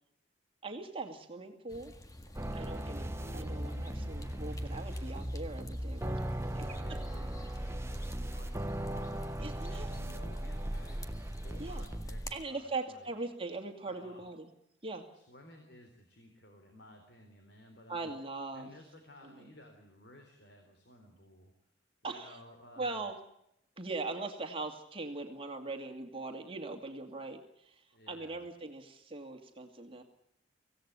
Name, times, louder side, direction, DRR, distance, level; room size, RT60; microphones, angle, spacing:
voice 1, 0.6-1.9 2.5-7.0 9.4-9.9 11.6-11.9 12.3-14.5 14.8-15.1 17.9-18.7 19.2-19.5 22.0-22.4 22.8-23.2 23.8-30.0, right 3 dB, 30° right, 4 dB, 2.5 m, -41 dB
sound 1, 1.7-12.4, left 1 dB, 20° left, 1.7 m, -52 dB
sound 2, 2.3-12.3, right 1 dB, 15° right, 0.8 m, -38 dB
voice 2, 3.2-4.6 5.0-5.4 6.3-9.2 9.7-11.0 11.4-13.1 13.9-14.3 15.1-18.1 18.5-21.5 22.0-23.0 27.9-28.5, left 1 dB, 65° left, 4 dB, 3.8 m, -55 dB
25.5 x 17.0 x 8.4 m, 0.77 s
head